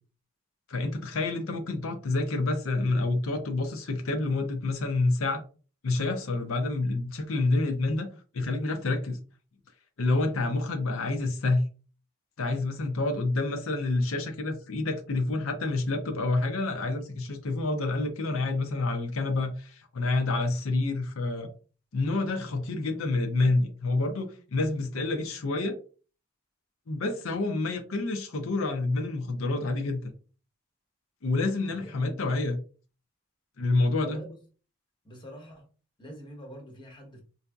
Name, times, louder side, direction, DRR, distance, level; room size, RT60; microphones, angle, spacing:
voice 1, 0.7-5.4 5.8-8.1 8.3-9.2 10.0-11.6 12.4-21.5 21.9-25.8 26.9-30.1 31.2-32.6 33.6-34.2, left 2 dB, 75° left, 0.6 m, -28 dB
voice 2, 31.7-32.2 34.0-34.4 35.0-35.7 36.0-37.2, equal, 20° left, 0.9 m, -45 dB
4.7 x 2.6 x 2.3 m
head